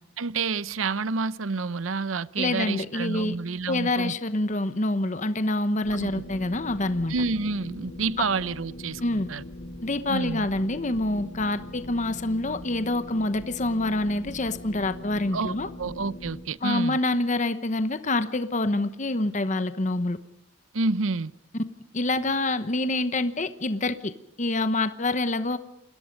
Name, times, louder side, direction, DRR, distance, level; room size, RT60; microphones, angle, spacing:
voice 1, 0.2-4.1 5.9-6.1 7.1-9.4 10.1-10.5 15.3-17.0 20.7-21.3, right 4 dB, 85° right, 18 dB, 0.7 m, -29 dB
voice 2, 2.4-3.3 3.7-7.1 8.2-8.3 9.0-9.3 9.8-15.7 16.6-20.2 21.9-24.1 24.4-25.6, left 2 dB, 40° left, 11 dB, 1.0 m, -26 dB
sound 1, 5.8-16.4, left 1 dB, 80° left, 3.3 m, -41 dB
28.5 x 21.5 x 5.3 m, 0.84 s
head